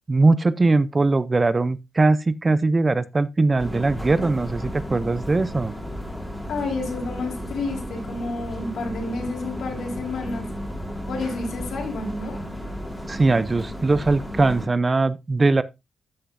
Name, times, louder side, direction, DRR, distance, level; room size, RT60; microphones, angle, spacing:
voice 1, 0.1-5.8 13.1-15.6, right 3 dB, 30° right, 0.5 m, -20 dB
sound 1, 3.6-14.7, equal, 5° left, 2.8 m, -34 dB
voice 2, 6.5-10.5 11.1-12.4, left 3 dB, 80° left, 4.3 m, -30 dB
13.5 x 6.8 x 2.6 m
cardioid pair, 100°, 0 cm